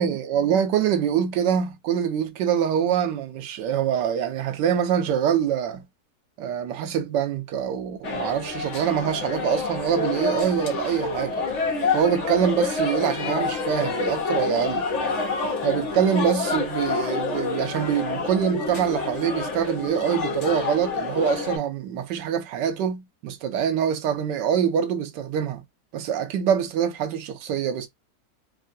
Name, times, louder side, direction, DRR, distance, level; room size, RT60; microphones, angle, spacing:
voice 1, 0.0-5.8 6.4-11.4 11.9-14.8 15.6-25.6 25.9-27.9, right 8 dB, 85° right, 1.3 m, -24 dB
sound 1, 8.0-21.6, left 3 dB, 50° left, 1.0 m, -28 dB
3.4 x 2.2 x 2.6 m
omnidirectional pair, 1.9 m